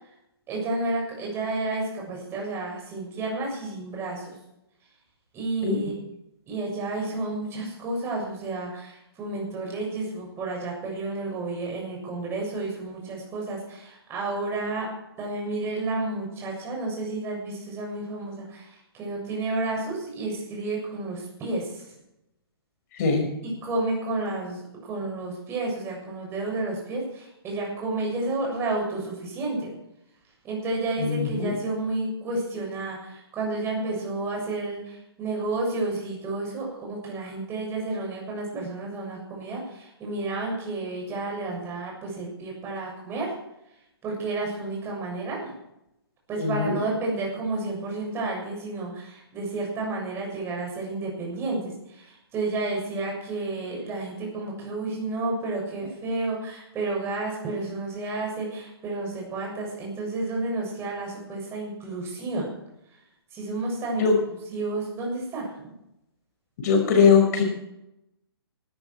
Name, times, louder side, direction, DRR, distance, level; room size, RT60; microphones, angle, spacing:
voice 1, 0.5-4.3 5.3-5.9 6.5-14.9 15.2-21.8 23.4-29.7 30.4-43.3 44.0-45.6 46.3-62.5 63.3-64.1 64.5-65.8, right 2 dB, 20° right, -1 dB, 7.1 m, -31 dB
voice 2, 22.9-23.3 31.0-31.6 46.4-46.8 64.0-64.2 66.6-67.4, left 5 dB, 40° left, 4 dB, 5.6 m, -21 dB
18.5 x 13.5 x 4.7 m, 0.85 s
hypercardioid pair, 140°, 14 cm